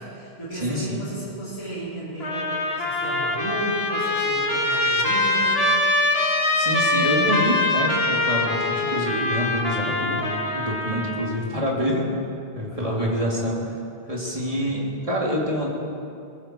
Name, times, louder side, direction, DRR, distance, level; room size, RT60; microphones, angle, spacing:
voice 1, 0.0-5.6 12.7-13.2 14.6-14.8, right 1 dB, 30° left, -11 dB, 3.8 m, -34 dB
voice 2, 0.6-1.0 6.5-12.1 12.5-13.6 14.1-15.7, equal, 35° right, -3 dB, 2.9 m, -26 dB
Trumpet, 2.2-11.4, left 2 dB, 75° left, 1.9 m, -23 dB
21.0 x 15.0 x 4.5 m, 2.6 s
omnidirectional pair, 1.0 m